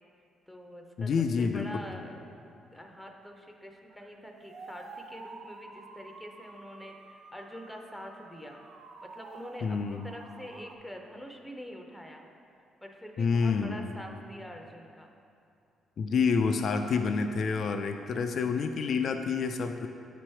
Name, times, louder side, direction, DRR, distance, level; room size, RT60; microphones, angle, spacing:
voice 1, 0.5-1.1 1.4-2.2 2.7-8.6 9.0-12.3 12.8-15.1 17.7-18.2, equal, 5° left, 2 dB, 0.6 m, -45 dB
voice 2, 1.0-1.6 9.6-10.1 13.2-13.9 16.0-19.9, left 5 dB, 60° left, 6 dB, 0.3 m, -28 dB
sound 1, 3.9-10.8, right 3 dB, 70° right, 0.5 m, -50 dB
8.3 x 3.1 x 4.4 m, 2.5 s
cardioid pair, 90°, 0 cm